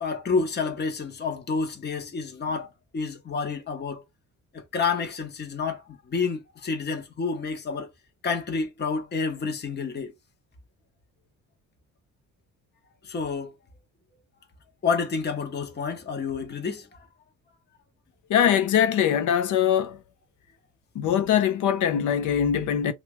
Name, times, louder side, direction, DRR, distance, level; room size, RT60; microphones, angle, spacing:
voice 1, 0.0-4.0 4.5-7.9 8.2-10.1 13.0-13.5 14.8-17.1, left 5 dB, 35° left, 0.9 m, -29 dB
voice 2, 18.3-20.0 20.9-22.9, left 9 dB, 75° left, 0.7 m, -22 dB
2.9 x 2.5 x 3.0 m
cardioid pair, 90°, 30 cm